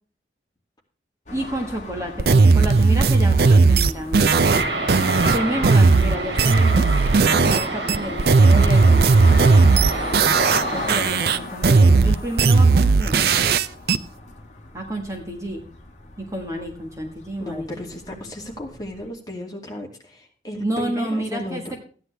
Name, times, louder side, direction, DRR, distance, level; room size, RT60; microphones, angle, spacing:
sound 1, 1.3-19.1, left 2 dB, 40° left, 1.7 m, -38 dB
voice 1, 1.3-4.3 5.3-6.9 7.2-9.1 10.3-13.2 14.7-15.6 16.2-18.3 20.6-21.8, right 1 dB, 20° right, 2 dB, 1.5 m, -30 dB
sound 2, 2.2-7.6 7.9-10.6 10.9-14.0, right 4 dB, 60° right, 0.5 m, -16 dB
sound 3, 4.3-11.0, right 2 dB, 80° right, 3.3 m, -28 dB
voice 2, 17.5-21.8, equal, 20° left, 0 dB, 2.4 m, -34 dB
14.0 x 9.7 x 3.4 m, 0.42 s
head